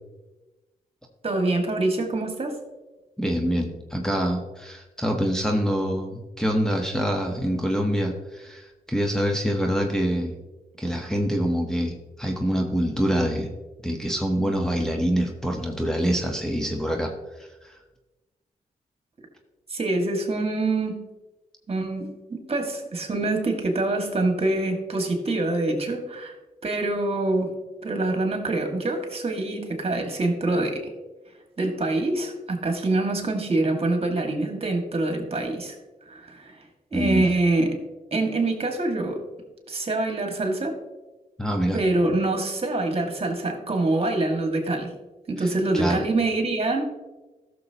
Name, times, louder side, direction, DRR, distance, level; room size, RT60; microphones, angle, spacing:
voice 1, 1.2-2.6 19.7-21.0 21.7-26.3 26.6-27.5 27.8-30.9 31.6-35.7 36.1-36.6 36.9-37.8 38.1-39.2 39.7-40.8 41.7-44.9 45.3-46.8, right 2 dB, 40° right, 3 dB, 2.1 m, -25 dB
voice 2, 3.2-10.4 10.8-13.5 13.8-17.1 17.4-17.8 36.9-37.3 41.4-41.8 45.4-46.0, equal, 5° left, 0 dB, 1.2 m, -25 dB
13.5 x 6.7 x 3.0 m, 1.2 s
supercardioid pair, 55°, 16 cm